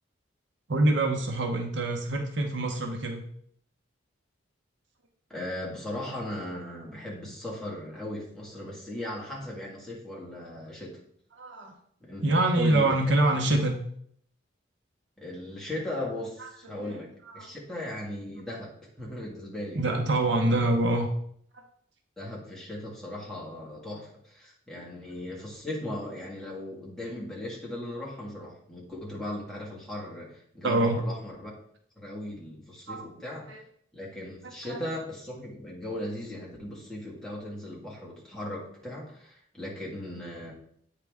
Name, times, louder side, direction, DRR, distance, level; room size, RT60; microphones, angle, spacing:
voice 1, 0.7-3.2 11.3-11.7 12.2-13.7 16.4-16.5 16.8-17.0 17.3-17.5 19.7-21.1 24.8-24.9 30.6-31.0 32.9-33.1 33.5-33.6 34.7-34.8, right 2 dB, 65° right, 3 dB, 0.9 m, -25 dB
voice 2, 5.3-11.0 12.0-12.2 12.5-13.0 15.2-20.4 22.2-31.5 32.0-33.5 33.9-40.5, left 1 dB, ahead, -5 dB, 1.8 m, -38 dB
8.4 x 4.8 x 3.6 m, 0.65 s
head